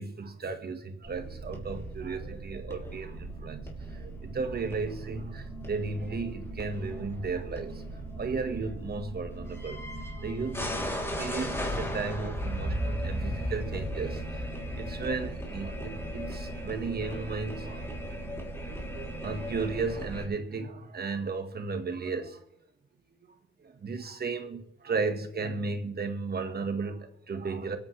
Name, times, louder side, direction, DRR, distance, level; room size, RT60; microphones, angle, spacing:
voice 1, 0.0-3.6 3.9-7.8 8.1-9.9 10.2-14.5 14.8-17.9 18.7-22.4 23.6-27.8, right 4 dB, 50° right, 1.7 m, -34 dB
sound 1, 1.0-20.3, right 1 dB, 10° left, 3.3 m, -37 dB
24.5 x 9.0 x 3.4 m
cardioid pair, 85°, 21 cm